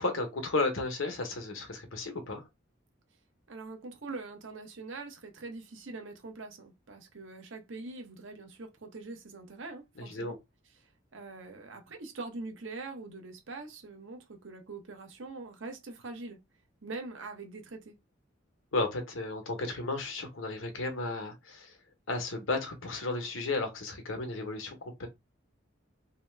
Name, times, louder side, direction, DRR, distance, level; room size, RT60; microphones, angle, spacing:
voice 1, 0.0-2.4 10.0-10.4 18.7-21.8 22.1-25.1, left 3 dB, 80° left, 0.9 m, -33 dB
voice 2, 3.5-10.4 11.1-16.4 16.8-17.9, right 3 dB, 70° right, 0.8 m, -43 dB
2.8 x 2.2 x 3.2 m
head